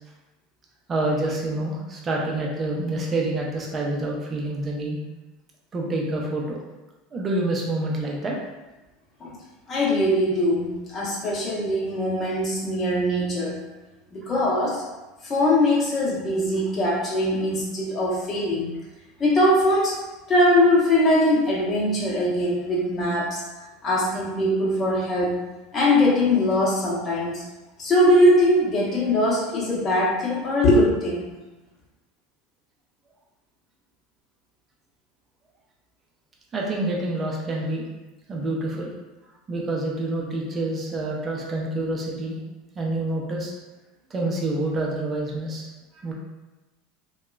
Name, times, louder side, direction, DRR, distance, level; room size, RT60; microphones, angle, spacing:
voice 1, 0.9-5.0 5.7-6.6 7.1-8.4 36.5-37.8 38.3-38.9 39.5-42.4 42.8-43.5 44.1-45.7 46.0-46.1, right 2 dB, 30° right, -2 dB, 0.6 m, -27 dB
voice 2, 9.7-13.6 14.1-14.8 15.2-18.7 19.2-19.9 20.3-23.4 23.8-25.3 25.7-27.4 27.8-31.3, left 1 dB, 30° left, -6 dB, 0.9 m, -21 dB
2.8 x 2.3 x 2.3 m, 1.1 s
hypercardioid pair, 80°, 0 cm